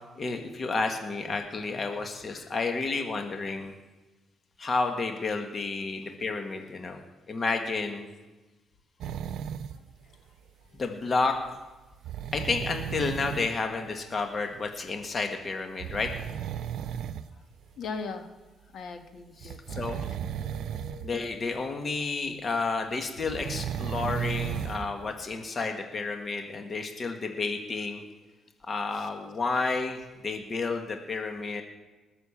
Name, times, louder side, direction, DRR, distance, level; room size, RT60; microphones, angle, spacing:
voice 1, 0.1-3.7 4.6-7.0 7.3-8.1 10.7-11.4 12.3-16.1 19.4-20.0 21.0-28.0 28.7-31.6, left 4 dB, 40° left, 4 dB, 1.8 m, -31 dB
sound 1, 9.0-9.7 12.0-13.5 14.9-15.0 15.8-17.2 17.9-18.0 19.4-21.1 21.4-21.5 23.2-24.9 25.4-25.5, right 9 dB, 75° right, 0.7 m, -34 dB
voice 2, 17.8-18.3 18.7-19.9 20.2-21.1 26.1-26.6 28.9-29.1, left 4 dB, 65° left, 6 dB, 1.6 m, -41 dB
19.5 x 6.9 x 7.3 m, 1.2 s
cardioid pair, 90°, 0 cm